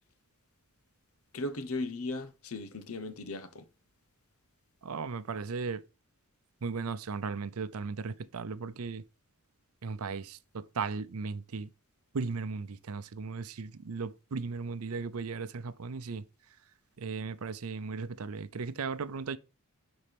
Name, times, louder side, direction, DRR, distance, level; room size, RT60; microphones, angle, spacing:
voice 1, 1.3-3.6, left 2 dB, 80° left, 1.0 m, -37 dB
voice 2, 4.8-5.8 6.6-9.0 9.8-11.7 12.1-16.2 17.0-19.4, right 4 dB, 85° right, 0.6 m, -36 dB
10.0 x 4.3 x 3.4 m
head